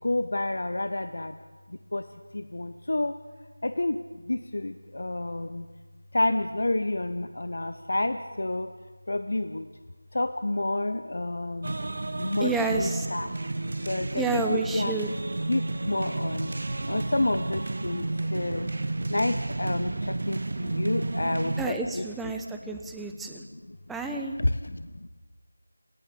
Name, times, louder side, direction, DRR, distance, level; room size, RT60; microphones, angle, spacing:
voice 1, 0.0-1.4 1.7-2.1 2.3-3.2 3.6-5.7 6.1-8.7 9.1-9.7 10.1-11.7 12.2-13.3 13.8-14.9 15.5-16.5 16.9-18.7 19.1-22.4 22.7-23.1 23.4-24.0 24.4-25.1, left 2 dB, 55° left, 10 dB, 1.2 m, -30 dB
sound 1, 11.6-21.7, right 2 dB, 45° right, 1.4 m, -31 dB
voice 2, 12.4-13.1 14.1-15.1 21.6-23.4 23.9-24.4, right 3 dB, 5° right, 4 dB, 1.1 m, -30 dB
27.5 x 18.0 x 8.7 m, 1.3 s
figure-of-eight pair, 170°, 0 cm